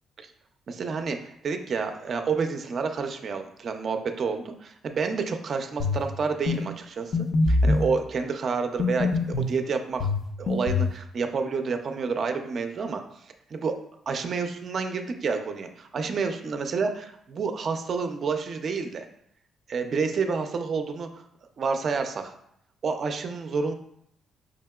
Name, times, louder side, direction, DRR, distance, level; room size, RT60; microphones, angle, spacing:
voice 1, 0.7-7.1 7.5-10.1 10.4-13.0 13.5-13.8 14.1-19.0 19.7-21.2 21.6-22.3 22.8-23.7, right 5 dB, 50° right, 6 dB, 0.4 m, -29 dB
sound 1, 5.8-6.1 6.5-6.6 7.1-7.9 8.8-9.5 10.0-10.9, left 3 dB, 55° left, 0.4 m, -23 dB
4.9 x 2.8 x 2.3 m, 0.74 s
cardioid pair, 90°, 0 cm